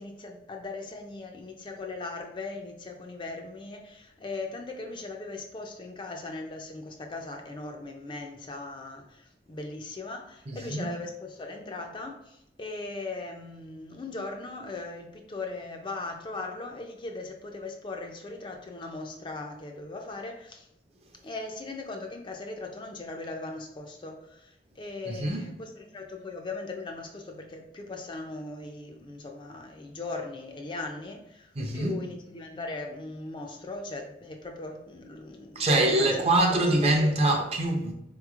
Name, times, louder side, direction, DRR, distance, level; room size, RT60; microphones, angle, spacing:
voice 1, 0.0-20.7 21.2-37.1, left 3 dB, 25° left, 0.3 m, -39 dB
voice 2, 10.5-10.9 25.1-25.5 31.6-32.0 35.6-37.9, right 2 dB, 35° right, 0.5 m, -24 dB
4.0 x 2.9 x 2.4 m
head